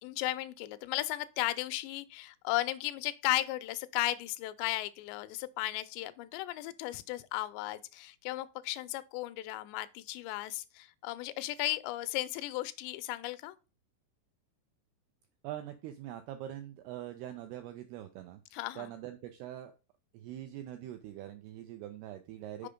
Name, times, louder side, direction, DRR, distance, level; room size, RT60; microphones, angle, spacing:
voice 1, 0.0-13.6 18.5-18.9 22.6-22.7, left 17 dB, 80° left, 2.6 m, -35 dB
voice 2, 15.4-18.4 18.8-19.7 20.1-22.7, right 12 dB, 90° right, 2.2 m, -43 dB
6.8 x 5.0 x 5.0 m
omnidirectional pair, 5.3 m